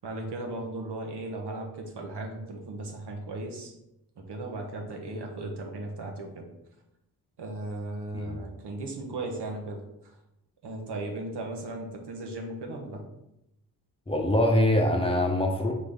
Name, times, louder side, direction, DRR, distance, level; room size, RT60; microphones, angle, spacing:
voice 1, 0.0-3.7 4.2-6.5 7.4-9.8 10.6-13.0, right 2 dB, 75° right, 2 dB, 1.0 m, -36 dB
voice 2, 14.1-15.7, left 1 dB, 15° left, 1 dB, 0.7 m, -24 dB
4.1 x 3.5 x 3.5 m, 0.85 s
cardioid pair, 55°, 41 cm